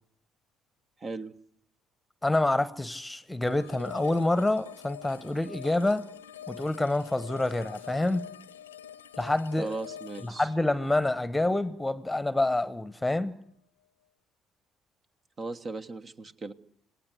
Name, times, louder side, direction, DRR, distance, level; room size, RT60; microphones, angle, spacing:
voice 1, 1.0-1.3 9.6-10.5 15.4-16.5, right 3 dB, 35° right, 9 dB, 1.4 m, -37 dB
voice 2, 2.2-6.1 6.5-8.2 9.2-9.7 10.2-13.4, left 2 dB, 10° left, 16 dB, 1.2 m, -27 dB
sound 1, 3.4-12.4, left 10 dB, 80° left, 0.9 m, -46 dB
28.0 x 19.0 x 7.9 m, 0.69 s
figure-of-eight pair, 50°, 0 cm